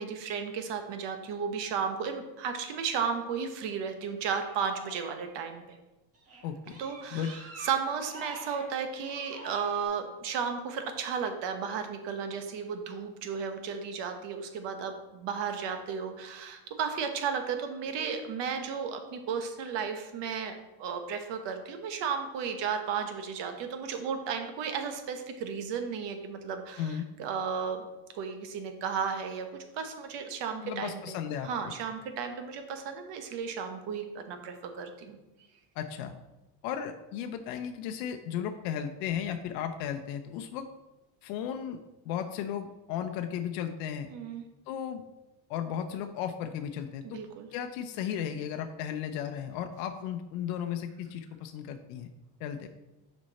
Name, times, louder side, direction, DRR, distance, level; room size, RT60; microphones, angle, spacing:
voice 1, 0.0-5.8 6.8-27.9 28.1-29.5 29.7-31.2 31.4-35.2 44.1-44.4 47.0-47.5, right 6 dB, 60° right, 6 dB, 1.2 m, -34 dB
sound 1, 4.2-5.6 6.1-9.9, right 2 dB, 30° right, 1.8 m, -46 dB
voice 2, 6.4-6.8 7.1-7.3 26.8-27.1 30.6-31.7 35.8-36.1 36.6-40.7 41.2-44.1 44.7-45.0 45.5-47.2 47.5-52.1 52.4-52.7, left 9 dB, 85° left, 6 dB, 0.7 m, -35 dB
6.4 x 5.3 x 4.1 m, 1.0 s
cardioid pair, 120°, 48 cm